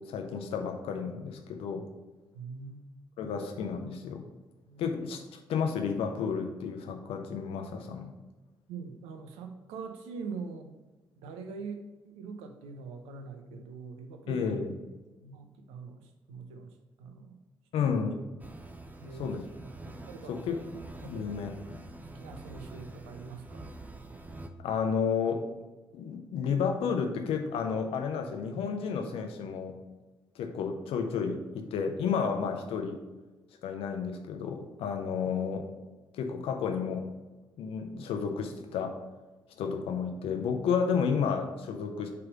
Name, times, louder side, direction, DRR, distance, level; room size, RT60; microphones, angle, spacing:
voice 1, 0.1-1.8 3.2-4.2 4.8-5.2 5.5-8.1 14.3-14.7 17.7-18.2 19.2-19.4 20.3-20.6 21.0-21.8 24.6-25.5 25.9-29.7 30.4-33.0 33.6-35.7 36.1-37.1 37.6-38.9 39.6-42.1, left 6 dB, 60° left, 4 dB, 0.8 m, -31 dB
voice 2, 2.3-2.8 3.2-3.3 4.7-5.0 8.7-10.8 11.2-14.5 15.2-17.4 17.8-17.9 19.0-19.3 20.1-20.4 21.0-21.3 22.0-23.7, right 5 dB, 65° right, 6 dB, 0.7 m, -43 dB
sound 1, 18.4-24.5, right 2 dB, 15° right, 0.7 m, -46 dB
6.8 x 3.5 x 5.2 m, 1.2 s
figure-of-eight pair, 40°, 11 cm